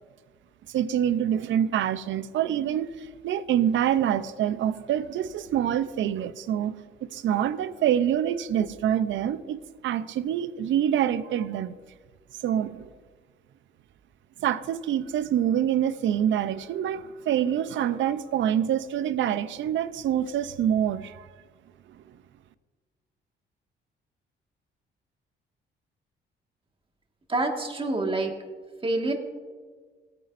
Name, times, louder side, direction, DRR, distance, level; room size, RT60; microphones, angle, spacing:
voice 1, 0.7-6.8 7.1-11.7 12.4-12.9 14.4-21.3, right 10 dB, 70° right, 14 dB, 0.6 m, -26 dB
voice 2, 27.3-28.3 28.8-29.1, right 2 dB, 25° right, 2 dB, 1.7 m, -26 dB
16.5 x 9.1 x 2.6 m, 1.5 s
cardioid pair, 90°, 20 cm